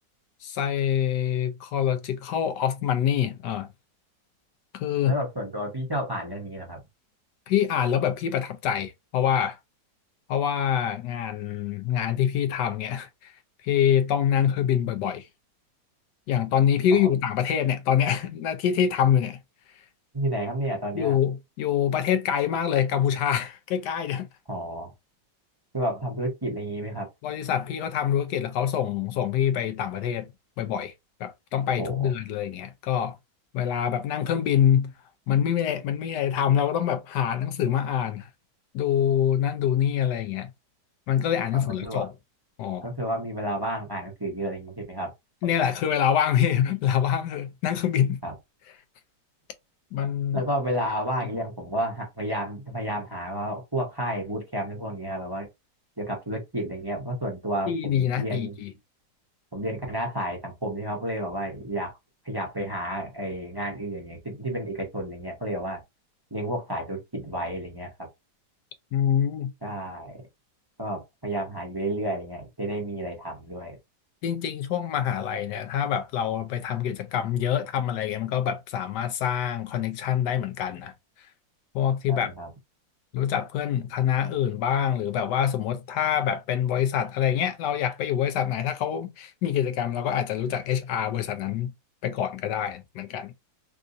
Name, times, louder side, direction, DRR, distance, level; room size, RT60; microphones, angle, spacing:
voice 1, 0.4-3.7 4.7-5.2 7.5-9.6 10.3-13.3 13.6-15.3 16.3-19.4 20.9-24.3 27.2-30.3 30.6-30.9 31.2-33.2 33.5-34.9 35.3-38.3 38.7-40.5 41.1-42.1 42.6-42.9 45.4-48.2 49.9-50.4 57.7-58.7 68.9-69.5 74.2-80.9 81.7-82.3 83.1-91.7 92.0-93.3, left 9 dB, 75° left, 1.1 m, -25 dB
voice 2, 5.0-6.8 16.9-17.1 20.1-21.1 24.5-24.9 25.7-27.1 31.8-32.1 41.5-42.1 42.8-45.1 48.2-48.3 50.3-55.5 56.0-58.6 59.5-61.9 62.2-65.8 66.3-67.9 69.6-70.2 70.8-73.8 82.1-82.5, right 1 dB, 20° right, 0.6 m, -31 dB
3.6 x 2.6 x 2.5 m
omnidirectional pair, 2.0 m